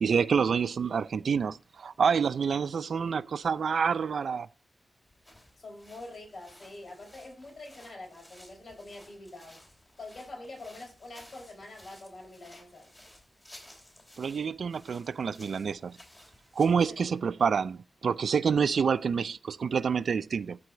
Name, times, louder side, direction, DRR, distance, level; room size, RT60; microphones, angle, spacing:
voice 1, 0.0-4.5 14.2-16.0 16.6-20.6, right 6 dB, 85° right, 0.4 m, -27 dB
sound 1, 5.0-16.9, left 1 dB, 20° left, 3.0 m, -56 dB
voice 2, 5.6-9.6 10.0-12.9 16.9-17.2, left 2 dB, 60° left, 4.6 m, -45 dB
13.0 x 4.8 x 3.8 m
wide cardioid pair, 145°, 0 cm